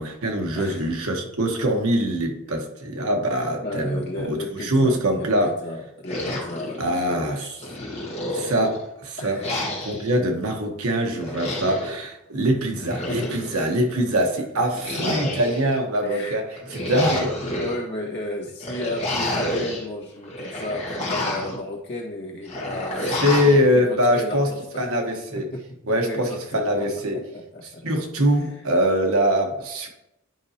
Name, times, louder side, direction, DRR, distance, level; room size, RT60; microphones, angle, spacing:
voice 1, 0.0-5.5 6.8-7.5 8.3-9.4 9.8-17.4 23.2-24.5 24.7-25.5 25.9-27.2 27.8-29.9, equal, 80° right, 3 dB, 1.2 m, -23 dB
voice 2, 0.5-0.8 3.6-7.6 9.2-9.6 13.1-13.5 13.8-13.9 14.2-14.6 16.0-16.4 17.6-24.9 25.4-25.6 26.0-27.8 28.4-28.5, left 1 dB, 50° left, -3 dB, 1.6 m, -34 dB
sound 1, 6.1-7.2 7.6-8.8 9.4-10.1 11.2-11.9 12.7-13.7 14.8-15.8 16.5-17.7 18.6-19.8 20.2-21.6 22.5-23.6, left 1 dB, 30° left, 1.7 m, -29 dB
10.5 x 5.0 x 2.8 m, 0.86 s
head